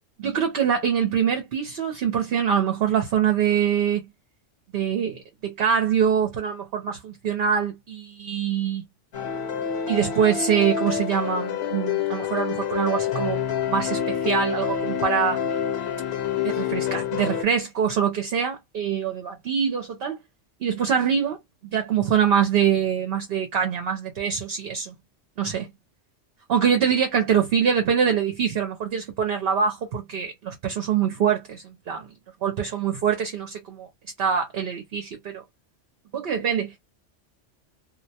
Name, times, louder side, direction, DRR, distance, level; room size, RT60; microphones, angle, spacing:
voice 1, 0.2-4.1 4.7-8.9 9.9-13.4 13.7-15.4 16.4-20.2 20.6-21.4 21.7-24.9 25.4-25.7 26.5-32.1 32.4-33.9 34.2-35.4 36.1-36.8, right 8 dB, 60° right, 0.8 m, -24 dB
sound 1, 9.1-17.4, left 8 dB, 65° left, 1.0 m, -27 dB
2.3 x 2.1 x 2.7 m
omnidirectional pair, 1.2 m